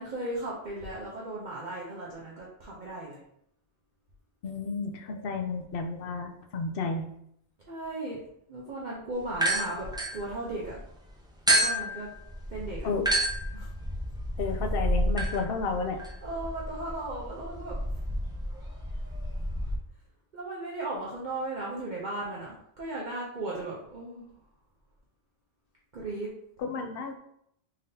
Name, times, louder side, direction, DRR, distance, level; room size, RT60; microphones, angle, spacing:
voice 1, 0.0-3.2 7.7-8.2 8.5-9.9 10.1-10.8 11.5-12.1 12.5-12.9 13.5-13.7 14.5-14.6 16.2-17.8 18.5-19.3 20.3-24.4 25.9-26.3, right 2 dB, 45° right, -5 dB, 0.8 m, -36 dB
voice 2, 4.4-7.0 12.8-13.1 14.4-16.0 26.7-27.1, left 4 dB, 60° left, 5 dB, 0.7 m, -32 dB
sound 1, 9.3-10.8 11.5-19.8, right 1 dB, 5° right, 0.3 m, -30 dB
3.8 x 3.6 x 2.7 m, 0.72 s
omnidirectional pair, 1.2 m